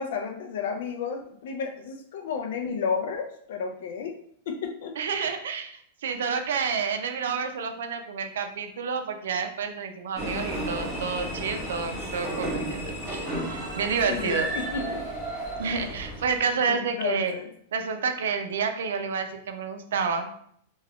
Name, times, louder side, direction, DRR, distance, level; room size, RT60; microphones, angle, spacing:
voice 1, 0.0-4.2 4.5-5.0 14.0-15.1 16.7-17.5, left 6 dB, 65° left, 3 dB, 0.4 m, -32 dB
voice 2, 5.0-14.5 15.6-17.3 17.7-20.3, right 5 dB, 80° right, 7 dB, 0.4 m, -29 dB
sound 1, 10.1-16.5, right 1 dB, 10° right, 0.7 m, -33 dB
2.3 x 2.2 x 3.4 m, 0.64 s
supercardioid pair, 170°, 0 cm